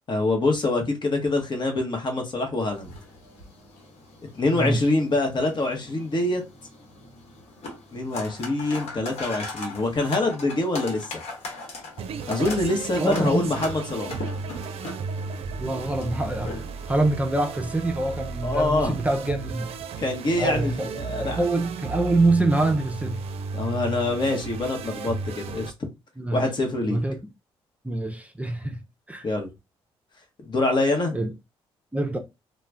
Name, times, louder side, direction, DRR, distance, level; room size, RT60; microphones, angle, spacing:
voice 1, 0.1-2.9 4.3-6.4 7.9-11.1 12.3-14.2 18.4-19.0 20.0-21.4 23.5-25.7 26.3-27.0 29.2-29.5 30.4-31.2, left 2 dB, 45° left, 1.0 m, -25 dB
sound 1, 2.6-17.1, left 2 dB, 75° left, 1.1 m, -40 dB
voice 2, 4.5-4.8 13.0-13.5 15.6-19.7 20.4-20.9 21.2-23.2 26.2-26.5 26.8-27.2 27.8-28.8 29.1-29.3 31.1-31.3 31.9-32.2, right 2 dB, 15° right, 0.6 m, -25 dB
sound 2, 12.0-25.7, right 5 dB, 65° right, 0.4 m, -34 dB
2.4 x 2.2 x 3.3 m
supercardioid pair, 65°, 11 cm